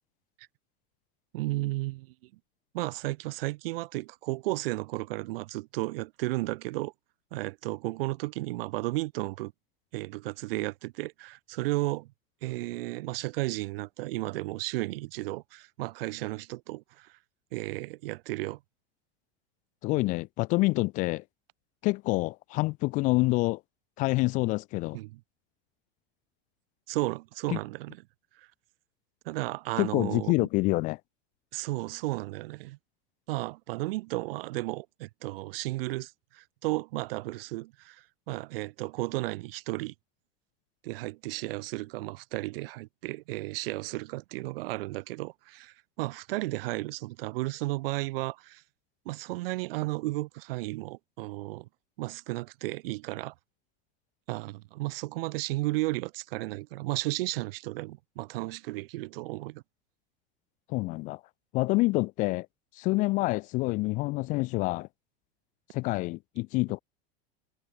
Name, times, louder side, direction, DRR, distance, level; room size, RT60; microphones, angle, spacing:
voice 1, 1.3-2.1 2.7-6.9 7.3-9.5 9.9-12.1 12.4-17.2 17.5-18.6 24.9-25.2 26.9-28.0 28.4-28.5 29.2-30.5 31.5-32.8 33.3-39.9 40.8-48.6 49.0-51.7 52.0-53.3 54.3-59.6, right 20 dB, 65° right, 1.0 m, -34 dB
voice 2, 19.8-21.2 21.8-23.6 24.0-25.0 27.5-27.6 29.8-31.0 60.7-61.2 61.5-62.5 62.7-64.9 65.7-66.8, left 22 dB, 25° left, 0.4 m, -27 dB
supercardioid pair, 175°, 31 cm